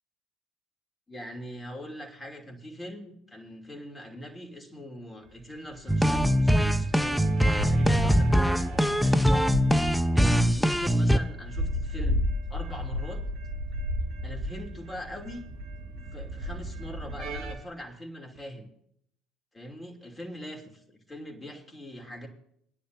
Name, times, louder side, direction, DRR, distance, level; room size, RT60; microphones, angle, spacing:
voice 1, 1.1-7.4 7.6-9.5 10.1-13.2 14.2-15.4 16.1-18.7 19.5-22.3, equal, 20° left, 1 dB, 2.8 m, -42 dB
sound 1, 5.4-17.5, equal, 65° right, 2.4 m, -34 dB
sound 2, 5.9-11.2, equal, ahead, 0.7 m, -22 dB
23.0 x 10.0 x 2.7 m, 0.71 s
hypercardioid pair, 60°, 0 cm